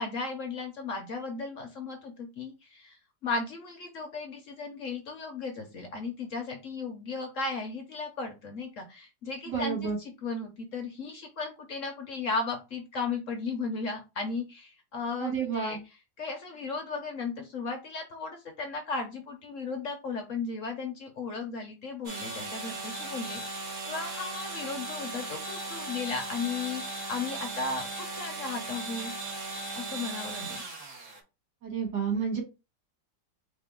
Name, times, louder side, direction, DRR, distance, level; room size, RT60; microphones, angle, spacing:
voice 1, 0.0-15.8 16.2-29.1 29.7-30.6, left 4 dB, 55° left, 4 dB, 1.0 m, -35 dB
voice 2, 9.5-10.0 15.2-15.8 31.6-32.4, right 6 dB, 70° right, -1 dB, 2.5 m, -30 dB
sound 1, 22.0-31.2, right 2 dB, 50° right, 1.4 m, -37 dB
4.2 x 3.0 x 3.7 m, 0.27 s
omnidirectional pair, 1.9 m